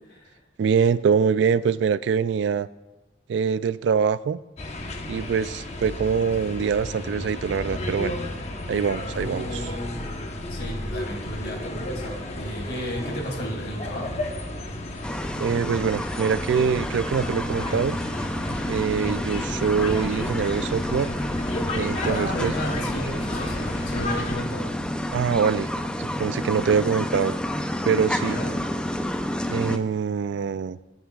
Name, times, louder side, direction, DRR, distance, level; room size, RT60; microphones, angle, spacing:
voice 1, 0.0-0.4 9.1-10.1 10.5-14.3 15.2-15.4 22.0-24.7 28.2-28.6, equal, 65° left, 1 dB, 2.7 m, -33 dB
voice 2, 0.6-2.7 3.3-4.4 5.1-8.2 8.7-9.4 15.4-18.0 18.7-21.1 21.7-22.5 25.1-25.7 26.0-27.3 27.8-28.4 29.5-30.8, right 6 dB, 75° right, 16 dB, 0.3 m, -24 dB
sound 1, 4.6-24.4, left 1 dB, 35° left, 1.0 m, -33 dB
sound 2, 15.0-29.8, left 1 dB, 5° left, 0.5 m, -30 dB
22.0 x 9.4 x 2.4 m, 1.1 s
head